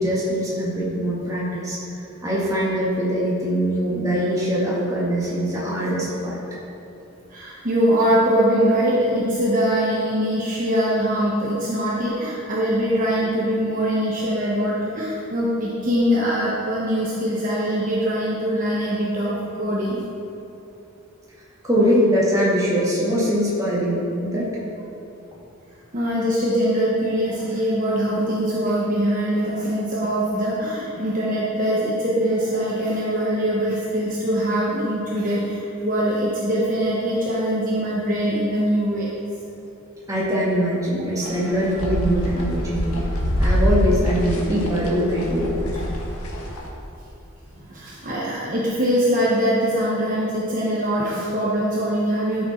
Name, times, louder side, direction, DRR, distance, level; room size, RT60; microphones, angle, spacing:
voice 1, 0.0-1.8 2.2-6.4 21.6-24.5 40.1-43.0 43.4-45.6, equal, 15° right, -7 dB, 2.3 m, -22 dB
voice 2, 7.3-20.0 25.9-39.1 45.7-45.8 47.6-52.5, equal, 40° right, -6 dB, 1.2 m, -22 dB
sound 1, 41.2-46.7, equal, 85° left, 1.5 m, -25 dB
12.0 x 6.6 x 4.5 m, 2.8 s
head